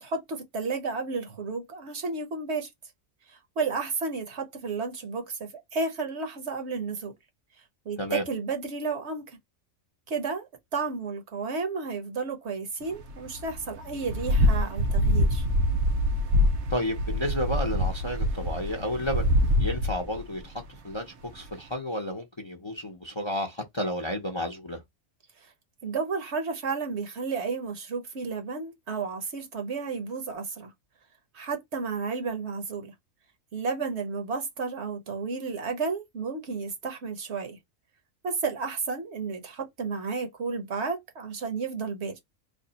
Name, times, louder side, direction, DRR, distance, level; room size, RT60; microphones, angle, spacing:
voice 1, 0.0-2.7 3.3-7.1 7.8-9.4 10.1-15.4 25.4-25.5 25.8-30.7 31.3-32.9 33.5-37.6 38.2-42.1, right 4 dB, 55° right, 1.0 m, -32 dB
sound 1, 13.1-20.4 20.7-20.8 21.3-21.4, equal, 85° right, 1.2 m, -25 dB
voice 2, 16.7-19.3 19.6-24.8, left 1 dB, 30° left, 0.6 m, -32 dB
3.6 x 2.3 x 3.9 m
omnidirectional pair, 1.4 m